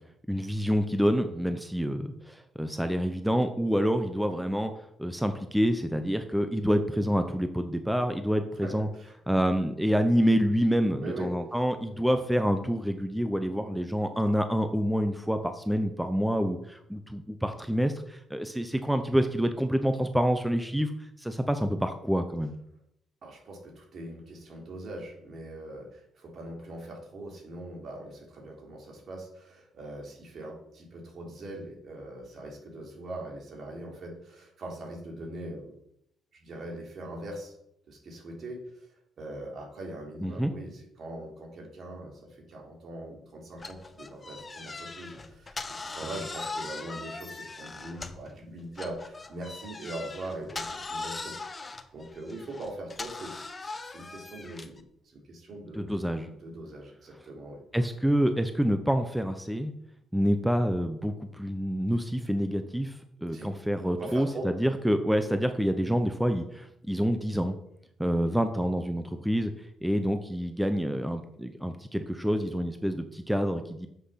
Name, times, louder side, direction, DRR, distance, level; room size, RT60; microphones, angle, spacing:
voice 1, 0.3-4.7 5.0-8.9 9.3-22.5 40.2-40.5 55.7-56.3 57.7-59.7 60.1-67.6 68.0-73.9, equal, 5° right, 7 dB, 0.8 m, -27 dB
voice 2, 8.6-9.4 11.0-11.3 23.2-35.7 36.3-37.5 37.9-38.9 39.2-54.8 55.1-55.9 56.2-57.6 63.3-63.5 64.0-64.5, right 1 dB, 55° right, -1 dB, 3.7 m, -41 dB
sound 1, 43.6-48.3 48.8-54.8, left 3 dB, 25° left, 1.0 m, -40 dB
7.6 x 6.6 x 5.8 m, 0.76 s
cardioid pair, 90°, 0 cm